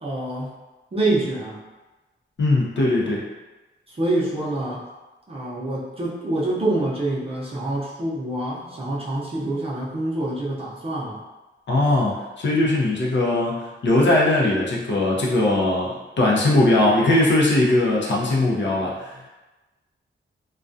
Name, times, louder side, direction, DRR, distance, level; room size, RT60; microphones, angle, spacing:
voice 1, 0.0-0.5 0.9-1.6 3.9-4.8 5.3-11.2, right 2 dB, 30° right, -6 dB, 0.6 m, -26 dB
voice 2, 2.4-3.2 11.7-19.3, left 2 dB, 65° left, -4 dB, 0.6 m, -20 dB
2.3 x 2.2 x 2.5 m, 1.1 s
wide cardioid pair, 130°, 20 cm